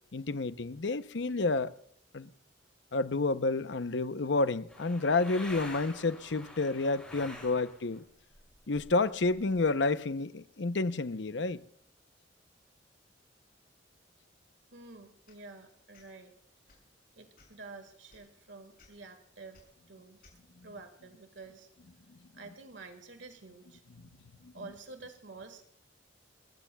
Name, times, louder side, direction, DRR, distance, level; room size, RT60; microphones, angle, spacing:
voice 1, 0.1-1.7 2.1-2.3 2.9-8.0 8.7-11.6 24.4-24.5, left 3 dB, 70° left, 0.7 m, -30 dB
sound 1, 4.7-8.0 8.3-9.6, left 1 dB, 5° left, 6.1 m, -47 dB
voice 2, 14.7-16.4 17.1-19.6 19.9-20.2 20.6-21.7 22.3-23.8 24.5-25.7, right 3 dB, 80° right, 1.8 m, -49 dB
sound 2, 15.2-15.4 15.9-16.1 16.6-16.9 17.3-17.6 18.1-18.2 18.8-18.9 19.5-19.6 20.2-20.4, left 3 dB, 50° left, 7.1 m, -60 dB
29.0 x 16.5 x 2.3 m
head